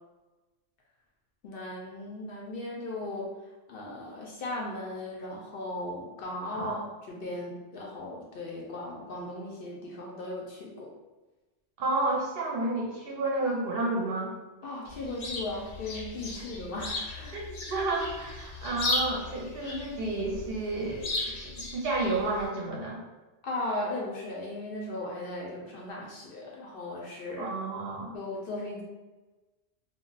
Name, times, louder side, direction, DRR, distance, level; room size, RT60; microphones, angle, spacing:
voice 1, 1.4-3.3 3.7-10.9 14.6-17.5 23.4-27.5 28.1-28.8, left 2 dB, 60° left, -2 dB, 0.7 m, -37 dB
voice 2, 11.8-14.3 17.3-17.4 17.7-21.1 21.7-23.0 27.4-28.2, right 2 dB, 60° right, -2 dB, 0.7 m, -30 dB
Chirp tweet, 14.8-22.5, left 2 dB, 85° left, 1.0 m, -36 dB
2.3 x 2.0 x 3.8 m, 1.1 s
omnidirectional pair, 1.2 m